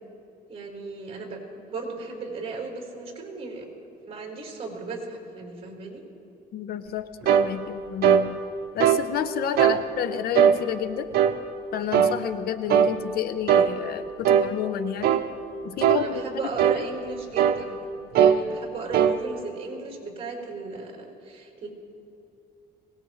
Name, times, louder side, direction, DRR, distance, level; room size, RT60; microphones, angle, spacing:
voice 1, 0.5-3.7 4.1-6.0 15.9-17.9 18.2-21.7, right 4 dB, 35° right, 0 dB, 4.7 m, -36 dB
voice 2, 6.5-8.4 8.7-11.1 11.7-15.2 15.6-16.8, left 9 dB, 65° left, 10 dB, 0.8 m, -30 dB
sound 1, 7.2-7.5 8.0-8.3 8.8-9.0 9.6-9.8 10.3-10.6 11.1-11.4 11.9-12.2 12.7-12.9 13.5-13.7 14.2-14.5 15.0-15.3 15.8-16.0 16.6-16.8 17.4-17.6 18.1-18.4 18.9-19.2, right 9 dB, 65° right, 0.9 m, -19 dB
23.5 x 19.0 x 3.2 m, 2.6 s
cardioid pair, 110°, 17 cm